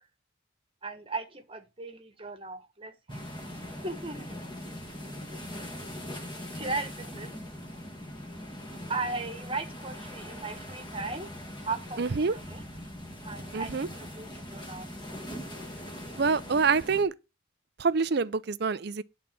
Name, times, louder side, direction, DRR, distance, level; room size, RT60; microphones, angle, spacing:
voice 1, 0.8-4.3 6.5-7.3 8.9-11.3 11.7-12.6 13.2-14.9, right 3 dB, 25° right, 1.4 m, -37 dB
sound 1, 3.1-17.0, left 1 dB, 25° left, 1.7 m, -41 dB
voice 2, 12.0-12.4 13.5-13.9 16.2-17.1 17.8-19.0, right 5 dB, 55° right, 0.5 m, -26 dB
10.5 x 4.1 x 7.5 m
head